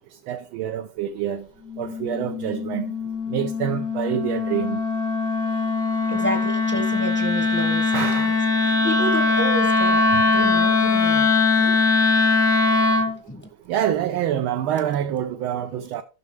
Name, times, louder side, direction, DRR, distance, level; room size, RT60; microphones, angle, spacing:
voice 1, 0.3-1.4 1.8-2.9 3.3-4.8 7.9-8.4 13.7-16.0, right 10 dB, 75° right, 1.4 m, -26 dB
Wind instrument woodwind instrument, 1.7-13.2, left 3 dB, 50° left, 0.7 m, -21 dB
voice 2, 5.9-11.8 13.0-13.5, equal, 10° left, 0.7 m, -31 dB
13.0 x 6.3 x 3.2 m
omnidirectional pair, 2.4 m